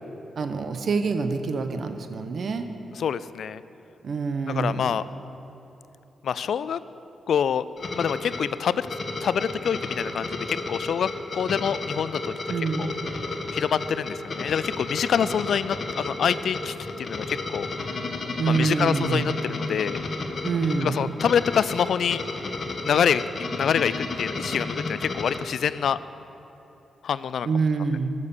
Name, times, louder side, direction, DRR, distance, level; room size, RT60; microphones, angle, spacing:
voice 1, 0.4-2.7 4.0-5.0 12.5-12.9 15.2-15.3 18.4-19.3 20.4-21.1 27.4-28.1, right 4 dB, 60° right, 8 dB, 0.9 m, -26 dB
voice 2, 2.9-3.6 4.5-5.0 6.2-6.8 7.3-7.7 7.9-8.9 9.2-12.3 12.8-12.9 13.5-17.7 18.5-20.0 20.8-22.2 22.8-23.2 23.6-26.0 27.0-27.5, left 8 dB, 75° left, 16 dB, 0.3 m, -26 dB
sound 1, 7.8-25.4, left 3 dB, 50° left, 1.3 m, -32 dB
14.5 x 6.7 x 6.8 m, 3.0 s
cardioid pair, 60°, 0 cm